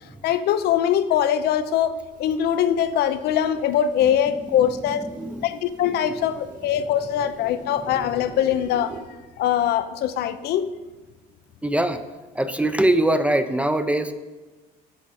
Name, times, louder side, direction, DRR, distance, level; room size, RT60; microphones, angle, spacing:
voice 1, 0.2-5.1 5.4-9.0 9.4-10.7, left 10 dB, 75° left, 12 dB, 0.5 m, -22 dB
sound 1, 2.1-9.0, right 5 dB, 55° right, 2.1 m, -45 dB
voice 2, 5.1-5.5 7.8-7.9 11.6-12.0 12.3-14.1, right 1 dB, 5° right, 10 dB, 0.5 m, -22 dB
12.5 x 5.2 x 4.2 m, 1.2 s
cardioid pair, 110°, 17 cm